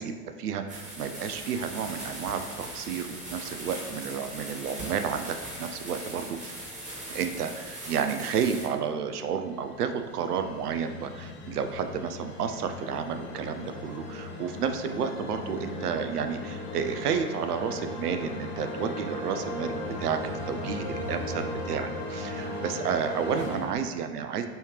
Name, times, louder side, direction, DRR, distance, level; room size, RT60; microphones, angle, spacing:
voice 1, 0.0-6.5 7.1-24.5, right 7 dB, 80° right, 8 dB, 0.5 m, -31 dB
sound 1, 0.7-8.7, right 1 dB, 15° right, 1.4 m, -40 dB
sound 2, 9.0-23.7, left 2 dB, 25° left, 0.7 m, -37 dB
5.5 x 2.9 x 3.0 m, 1.4 s
figure-of-eight pair, 90°, 46 cm